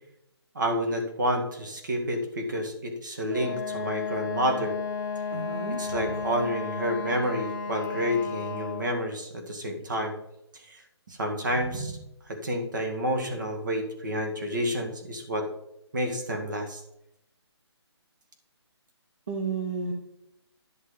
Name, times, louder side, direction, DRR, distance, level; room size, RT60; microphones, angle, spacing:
voice 1, 0.5-4.7 5.8-10.1 10.6-10.8 11.1-11.9 12.3-15.5 15.9-16.8, equal, 45° right, 4 dB, 2.0 m, -29 dB
Wind instrument woodwind instrument, 3.3-9.0, left 5 dB, 45° left, 1.6 m, -33 dB
voice 2, 5.3-5.8 11.7-11.9 19.3-19.9, right 5 dB, 25° right, 1 dB, 0.8 m, -32 dB
11.5 x 6.1 x 5.1 m, 0.82 s
hypercardioid pair, 175°, 14 cm